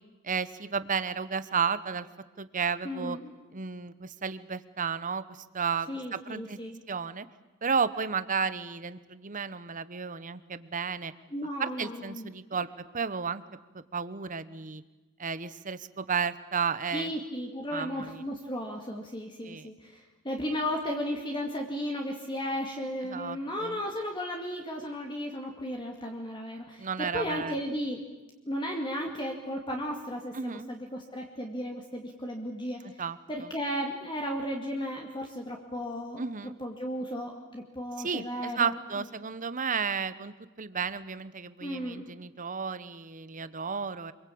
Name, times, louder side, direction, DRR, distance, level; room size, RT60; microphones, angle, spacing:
voice 1, 0.2-2.1 2.4-3.2 3.5-6.6 6.9-7.3 7.6-11.1 11.6-12.7 12.9-13.4 13.7-14.8 15.2-17.1 17.7-18.2 19.4-19.7 23.0-23.8 26.8-27.6 30.3-30.7 32.8-33.5 36.2-36.6 38.0-44.1, right 6 dB, 35° right, 14 dB, 1.0 m, -33 dB
voice 2, 2.8-3.3 5.9-6.8 11.3-12.3 16.9-28.0 28.5-33.0 33.3-36.2 36.6-38.8 41.6-42.1, equal, 20° left, 1 dB, 2.3 m, -35 dB
26.5 x 22.5 x 8.7 m, 1.1 s
head